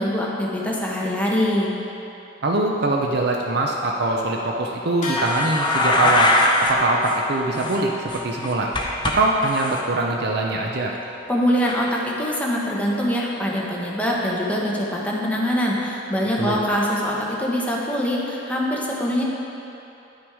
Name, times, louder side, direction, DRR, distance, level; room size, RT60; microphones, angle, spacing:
voice 1, 0.0-1.7 11.3-19.2, equal, 10° left, -4 dB, 1.1 m, -23 dB
voice 2, 2.4-6.3 6.6-8.7 9.0-10.9 16.4-16.6, right 2 dB, 60° right, 0 dB, 0.6 m, -23 dB
sound 1, 5.0-14.8, left 1 dB, 40° left, 1.7 m, -36 dB
sound 2, 5.2-6.7 7.0-7.2 7.5-9.1 9.4-9.8 11.6-11.7, left 2 dB, 25° left, 0.8 m, -21 dB
10.0 x 6.1 x 4.8 m, 2.9 s
head